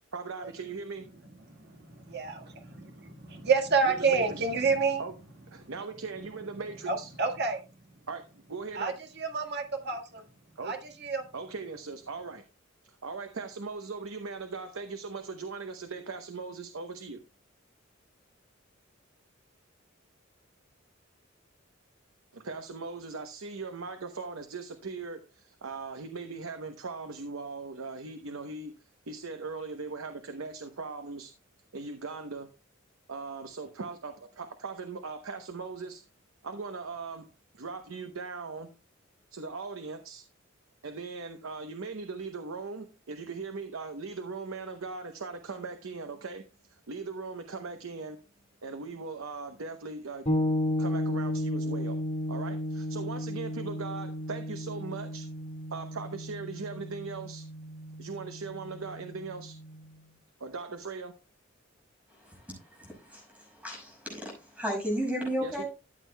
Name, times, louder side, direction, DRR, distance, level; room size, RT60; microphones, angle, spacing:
voice 1, 0.1-1.1 3.8-4.4 5.0-5.1 5.5-7.1 8.1-8.9 10.6-10.7 11.3-12.4 13.0-17.2 22.3-28.7 29.1-31.3 31.7-32.5 33.1-36.0 36.4-37.3 37.5-38.7 39.3-40.2 40.8-46.4 46.7-48.2 48.6-50.3 50.8-52.0 52.3-55.3 55.7-57.4 58.0-59.5 60.4-61.1 65.4-65.6, right 4 dB, 85° right, 0.8 m, -39 dB
voice 2, 1.5-5.0 5.6-5.7 6.9-7.6 8.7-10.2 10.6-11.3, right 4 dB, 55° right, 1.6 m, -29 dB
sound 1, 50.3-59.9, left 1 dB, 35° left, 2.0 m, -34 dB
voice 3, 62.1-65.7, equal, 5° right, 5.8 m, -34 dB
13.5 x 8.2 x 2.2 m
head